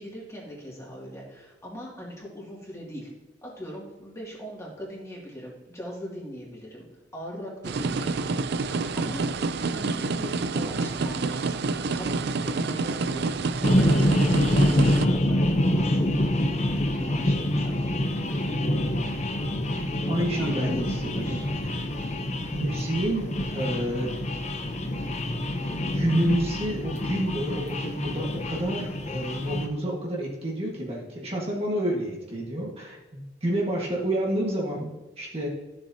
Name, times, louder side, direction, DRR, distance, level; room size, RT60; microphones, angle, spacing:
voice 1, 0.0-3.1 3.4-6.9 7.1-17.9 20.0-22.0, equal, 15° left, -4 dB, 2.4 m, -41 dB
sound 1, 7.6-15.1, right 3 dB, 60° right, 0.5 m, -28 dB
sound 2, 13.6-29.7, left 1 dB, 40° left, 0.8 m, -26 dB
voice 2, 20.1-21.9 22.5-24.1 25.9-35.5, right 1 dB, 35° right, -2 dB, 1.6 m, -29 dB
13.0 x 7.1 x 2.8 m, 1.1 s
head